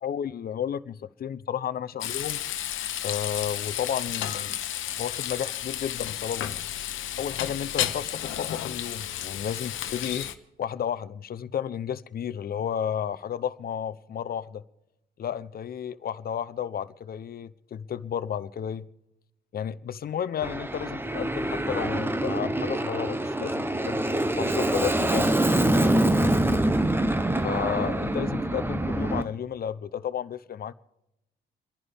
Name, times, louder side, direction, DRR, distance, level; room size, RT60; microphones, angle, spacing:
voice 1, 0.0-2.4 3.0-4.6 5.0-6.6 7.1-10.3 10.6-14.6 15.2-18.9 19.5-25.3 27.4-30.7, left 9 dB, 50° left, 0.8 m, -32 dB
Frying (food), 2.0-10.3, left 11 dB, 80° left, 1.0 m, -32 dB
Aircraft, 20.4-29.2, right 1 dB, 10° right, 0.9 m, -25 dB
29.0 x 11.0 x 3.5 m
cardioid pair, 90°, 20 cm